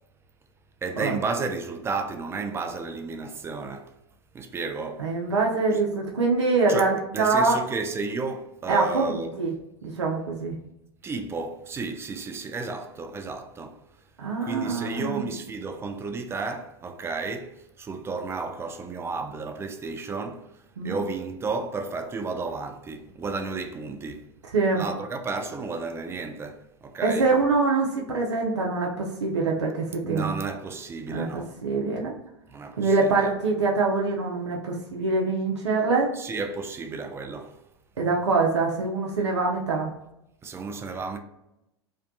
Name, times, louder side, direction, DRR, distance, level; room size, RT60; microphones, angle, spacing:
voice 1, 0.8-3.9 4.3-5.1 5.7-5.8 6.7-9.3 11.0-13.8 14.4-24.2 24.7-27.3 30.0-31.5 32.5-33.3 36.1-37.6 40.4-41.2, right 4 dB, 15° right, 0.3 m, -32 dB
voice 2, 5.0-7.6 8.7-9.5 9.8-10.6 14.2-15.2 20.8-21.0 24.5-24.8 27.0-30.4 31.1-32.1 32.8-36.1 38.0-39.9, right 3 dB, 90° right, 0.5 m, -24 dB
2.6 x 2.2 x 2.5 m
hypercardioid pair, 95°, 14 cm